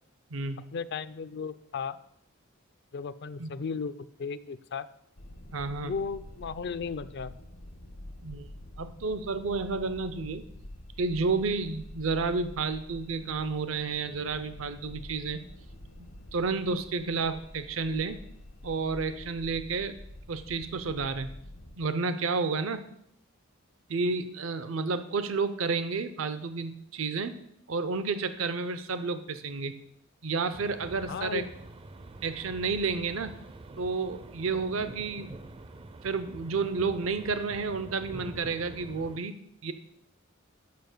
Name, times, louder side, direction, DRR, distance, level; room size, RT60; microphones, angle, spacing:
voice 1, 0.7-2.0 2.9-4.9 5.8-7.3 31.1-31.5, left 5 dB, 55° left, 14 dB, 0.4 m, -35 dB
sound 1, 5.2-21.8, left 1 dB, 75° left, 1.1 m, -47 dB
voice 2, 5.5-5.9 8.2-8.5 8.8-10.4 11.0-15.4 16.3-18.2 18.6-20.0 20.3-21.3 21.8-22.8 23.9-27.3 27.7-29.7 30.2-31.4 32.2-33.3 33.8-35.3 36.0-39.3 39.6-39.7, right 4 dB, 75° right, 11 dB, 0.6 m, -31 dB
sound 2, 30.5-39.2, right 2 dB, 25° right, 0.4 m, -46 dB
6.8 x 6.1 x 6.6 m, 0.73 s
head